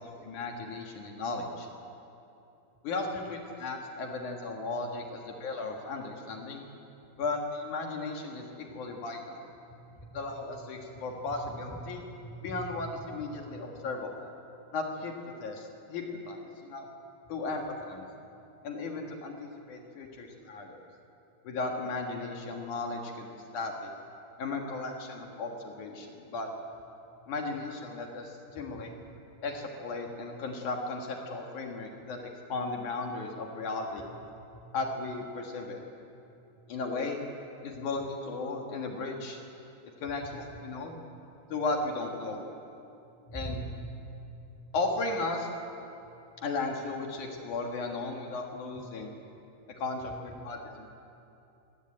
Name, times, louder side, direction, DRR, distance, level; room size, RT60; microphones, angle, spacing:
voice 1, 0.0-1.7 2.8-6.6 7.2-9.5 10.1-12.0 12.4-14.3 14.7-15.1 15.4-16.9 17.3-18.1 18.6-20.8 21.4-23.9 24.4-26.5 27.3-28.9 29.4-34.0 34.7-35.8 36.7-37.2 37.6-39.4 40.0-41.0 41.5-42.4 43.3-43.6 44.7-45.5 46.4-49.1 49.8-50.9, left 3 dB, 55° left, 2 dB, 3.0 m, -35 dB
voice 2, 9.7-10.1 10.9-11.0 11.3-13.1 13.4-13.8 27.2-27.3 28.7-29.1 34.0-34.1 36.5-36.6 37.7-37.8 40.2-40.8 41.5-41.6 43.2-43.9 44.2-44.6 46.0-46.3 48.7-48.8 50.0-50.1, right 1 dB, 10° left, 1 dB, 1.5 m, -44 dB
23.5 x 18.5 x 8.8 m, 2.8 s
omnidirectional pair, 4.6 m